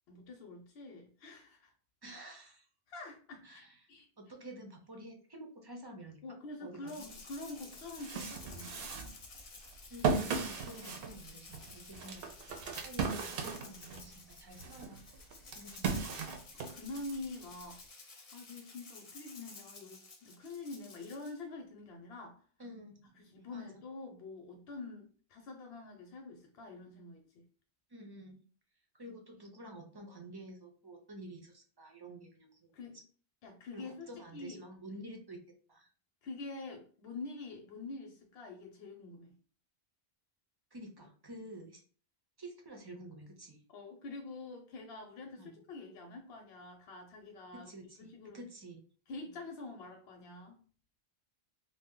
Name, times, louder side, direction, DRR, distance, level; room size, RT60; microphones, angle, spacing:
voice 1, 0.1-1.7 2.9-4.1 6.2-9.0 16.7-22.4 23.1-27.4 32.7-33.0 33.4-34.1 34.3-34.6 36.2-39.4 43.7-47.7 48.0-48.4 49.1-50.6, left 3 dB, 80° left, 2 dB, 0.8 m, -46 dB
voice 2, 2.0-2.7 3.4-3.7 4.2-6.9 9.9-15.1 15.5-16.0 22.6-23.7 27.9-28.4 28.9-32.7 33.7-35.4 35.7-35.9 40.7-41.8 42.4-43.6 45.4-45.6 47.6-48.1 48.3-48.8, right 1 dB, 30° right, 2 dB, 0.5 m, -50 dB
Rattle (instrument), 6.9-21.4, left 3 dB, 45° left, 0.6 m, -53 dB
sound 1, 7.2-7.3 7.7-14.1 14.5-17.1, right 5 dB, 70° right, 0.7 m, -37 dB
2.6 x 2.1 x 3.7 m, 0.41 s
omnidirectional pair, 1.0 m